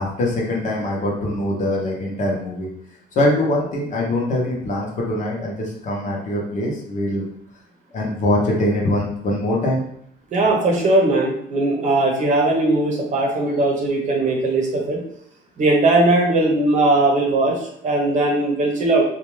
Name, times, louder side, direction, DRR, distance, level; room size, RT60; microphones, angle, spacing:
voice 1, 0.0-2.7 3.1-7.3 7.9-9.8, left 1 dB, 45° left, -2 dB, 0.9 m, -23 dB
voice 2, 10.3-15.0 15.6-19.0, right 2 dB, 45° right, -1 dB, 0.8 m, -19 dB
2.5 x 2.3 x 3.1 m, 0.69 s
cardioid pair, 110°, 17 cm